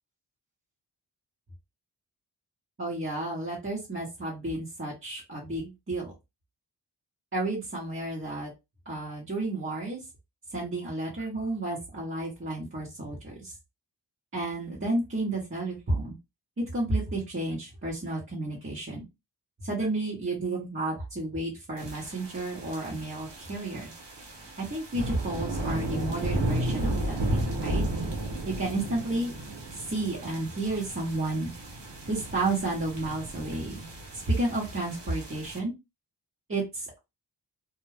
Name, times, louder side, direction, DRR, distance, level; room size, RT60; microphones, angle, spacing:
voice 1, 2.8-6.1 7.3-8.5 8.9-10.0 10.5-13.5 14.3-16.1 16.6-19.0 19.6-23.9 24.6-27.8 28.5-29.3 29.9-31.5 32.1-33.9 34.1-35.7 36.5-37.0, right 2 dB, 30° right, -5 dB, 1.1 m, -31 dB
sound 1, 21.8-35.6, right 1 dB, 80° right, 1.0 m, -34 dB
2.3 x 2.2 x 3.2 m, 0.23 s
wide cardioid pair, 55°, 42 cm